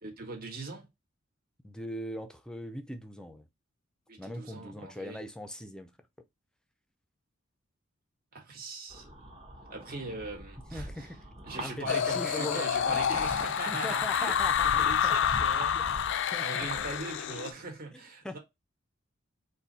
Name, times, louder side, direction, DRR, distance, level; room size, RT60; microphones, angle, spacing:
voice 1, 0.0-0.9 4.1-5.2 8.3-9.1 9.7-11.1 11.5-14.3 14.6-16.1 16.4-18.4, right 3 dB, 50° right, 1.5 m, -40 dB
voice 2, 1.6-3.5 4.2-5.9 10.7-11.2 11.6-13.0 13.7-15.2 15.7-15.8 16.3-16.9 17.9-18.0 18.2-18.4, left 1 dB, 5° left, 0.6 m, -40 dB
sound 1, 8.9-17.0, equal, 30° right, 1.1 m, -44 dB
sound 2, 11.9-17.5, left 8 dB, 60° left, 0.4 m, -28 dB
4.3 x 2.8 x 4.1 m
head